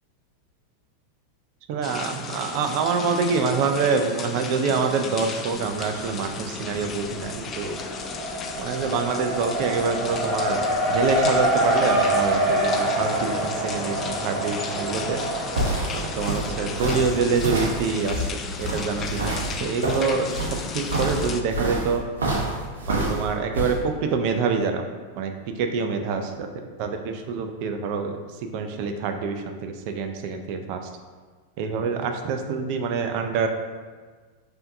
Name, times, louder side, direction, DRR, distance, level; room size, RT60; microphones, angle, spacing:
voice 1, 1.7-7.8 8.6-15.2 15.9-18.3 18.6-22.0 22.9-24.8 25.2-26.5 26.8-28.2 28.5-30.8 31.6-33.5, right 5 dB, 55° right, 5 dB, 0.4 m, -26 dB
sound 1, 1.8-21.4, left 5 dB, 30° left, 0.4 m, -35 dB
Race car auto racing, 5.6-6.3 6.6-18.0, right 1 dB, 15° right, 1.4 m, -27 dB
sound 2, 15.1-23.7, right 1 dB, 80° right, 0.8 m, -28 dB
5.5 x 2.7 x 2.6 m, 1.5 s
hypercardioid pair, 95°, 0 cm